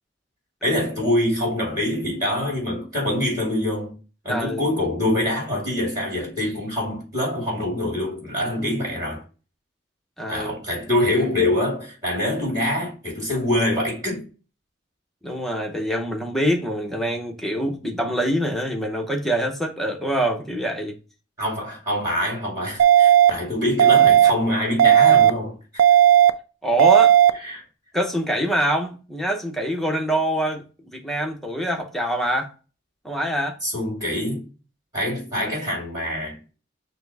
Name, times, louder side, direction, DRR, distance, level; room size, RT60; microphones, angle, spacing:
voice 1, 0.6-3.9 4.2-9.2 10.3-14.3 21.4-25.6 27.4-27.6 33.6-34.4 34.9-36.4, left 1 dB, 20° right, 2.2 m, -25 dB
voice 2, 4.3-4.6 8.6-8.7 10.2-10.6 15.2-21.0 26.6-27.2 27.9-30.6 30.9-32.5 33.0-33.6, right 1 dB, ahead, 0.7 m, -25 dB
sound 1, 22.8-23.3 23.8-24.3 24.8-25.3 25.8-26.3 26.8-27.3, right 10 dB, 80° right, 0.3 m, -13 dB
5.7 x 2.0 x 3.3 m
head